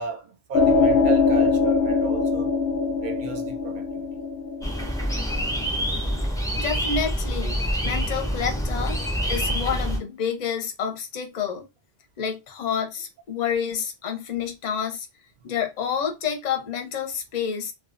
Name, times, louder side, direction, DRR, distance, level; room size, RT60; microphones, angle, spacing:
voice 1, 0.0-2.5 3.0-4.1, right 5 dB, 60° right, 0.6 m, -35 dB
sound 1, 0.5-5.8, left 4 dB, 85° left, 0.8 m, -22 dB
sound 2, 4.6-10.0, equal, 5° left, 0.3 m, -26 dB
voice 2, 6.6-7.6 7.8-9.0 9.3-11.6 12.2-15.1 15.4-17.7, left 7 dB, 50° left, 0.6 m, -28 dB
2.3 x 2.3 x 2.4 m
omnidirectional pair, 1.0 m